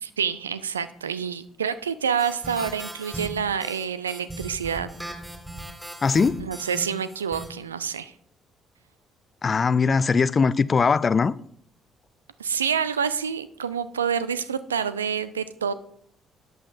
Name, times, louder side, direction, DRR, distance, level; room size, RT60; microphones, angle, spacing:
voice 1, 0.0-4.9 6.4-8.1 12.4-15.7, right 7 dB, 80° right, 0.3 m, -27 dB
sound 1, 2.2-7.5, right 1 dB, 10° right, 3.4 m, -37 dB
voice 2, 6.0-6.4 9.4-11.3, left 5 dB, 35° left, 0.3 m, -20 dB
13.0 x 9.4 x 2.6 m
figure-of-eight pair, 45°, 0 cm